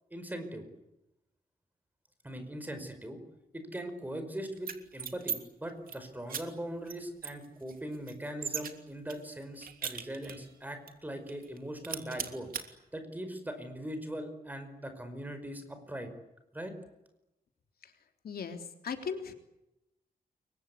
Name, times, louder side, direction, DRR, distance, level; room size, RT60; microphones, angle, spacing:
voice 1, 0.1-0.7 2.2-3.2 3.5-12.5 12.9-16.1 16.5-16.7, right 1 dB, 10° right, 8 dB, 5.1 m, -40 dB
sound 1, 4.6-5.4 5.7-6.0 6.3-6.4 6.9-7.0 7.2-8.7 9.1-10.5 10.9-11.0 11.3-11.6 11.8-12.6, right 6 dB, 65° right, 3.1 m, -38 dB
voice 2, 18.2-19.3, left 6 dB, 70° left, 5 dB, 3.5 m, -38 dB
29.5 x 23.5 x 8.5 m, 0.91 s
wide cardioid pair, 175°, 16 cm